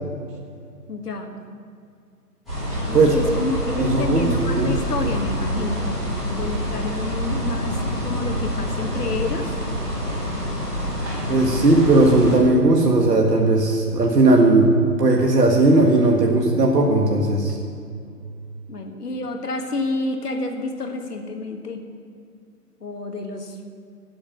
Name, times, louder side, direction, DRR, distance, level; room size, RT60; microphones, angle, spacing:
voice 1, 0.9-1.3 2.9-9.6 18.7-21.8 22.8-23.6, left 2 dB, 75° left, 4 dB, 1.7 m, -29 dB
sound 1, 2.5-12.4, equal, ahead, 1.0 m, -26 dB
voice 2, 3.8-4.7 11.3-17.6, right 2 dB, 80° right, 0 dB, 1.6 m, -17 dB
8.5 x 7.6 x 8.8 m, 2.3 s
hypercardioid pair, 165°, 47 cm